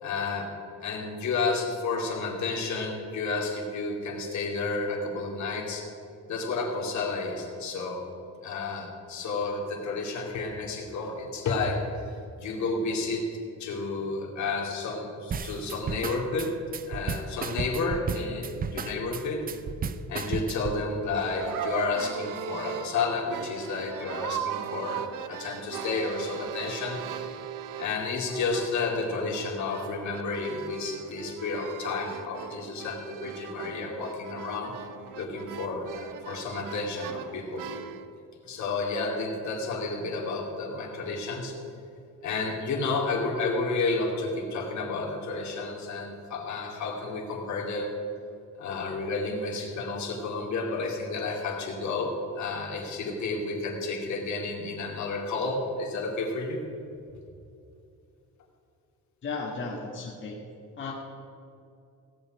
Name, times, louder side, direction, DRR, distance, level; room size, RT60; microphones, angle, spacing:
voice 1, 0.0-0.5 0.8-5.8 6.3-8.0 8.4-11.8 12.4-13.3 13.6-16.6 16.9-19.5 20.1-27.0 27.8-34.7 35.2-37.7 38.4-41.6 42.2-47.9 48.6-56.6, left 3 dB, 65° left, -1 dB, 2.5 m, -31 dB
sound 1, 15.3-20.8, right 5 dB, 30° right, 0.5 m, -33 dB
sound 2, 21.1-28.0 28.3-38.1, right 9 dB, 90° right, 0.8 m, -38 dB
voice 2, 59.2-60.4 60.8-60.9, left 4 dB, 40° left, -2 dB, 1.6 m, -34 dB
17.0 x 5.7 x 9.0 m, 2.6 s
cardioid pair, 155°, 31 cm